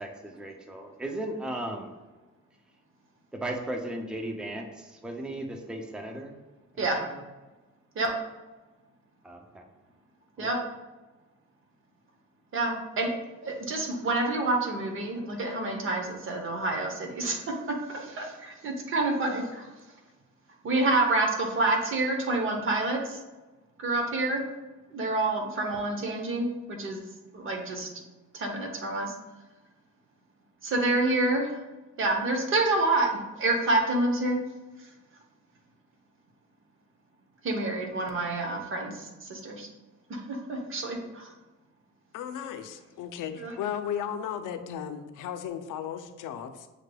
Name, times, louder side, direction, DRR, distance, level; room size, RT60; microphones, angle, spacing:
voice 1, 0.0-1.9 3.3-6.3 6.8-7.2 9.2-9.6 10.4-10.5, right 1 dB, 5° right, 2 dB, 0.4 m, -36 dB
voice 2, 12.5-13.1 13.4-17.4 17.9-19.7 20.6-23.2 23.8-24.4 24.9-27.0 27.3-27.9 28.3-29.1 30.6-31.6 32.0-34.4 37.4-39.7 40.1-41.3 43.4-43.5, right 2 dB, 40° right, 2 dB, 0.8 m, -28 dB
voice 3, 42.1-46.7, left 9 dB, 85° left, 8 dB, 0.5 m, -35 dB
6.4 x 3.3 x 2.2 m, 1.2 s
wide cardioid pair, 170°, 30 cm